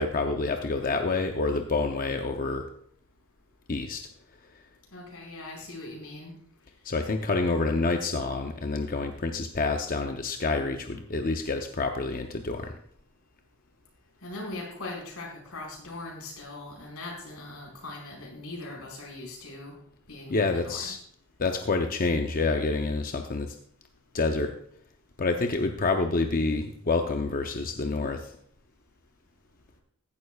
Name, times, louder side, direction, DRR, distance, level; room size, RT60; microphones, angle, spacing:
voice 1, 0.0-2.7 3.7-4.0 6.8-12.7 20.3-21.0 21.4-23.5 24.1-24.5 25.2-28.3, left 3 dB, 40° left, 5 dB, 0.7 m, -28 dB
voice 2, 4.9-6.3 14.2-19.7 20.1-20.9, left 2 dB, 90° left, -1 dB, 4.9 m, -40 dB
15.0 x 11.0 x 2.4 m, 0.64 s
head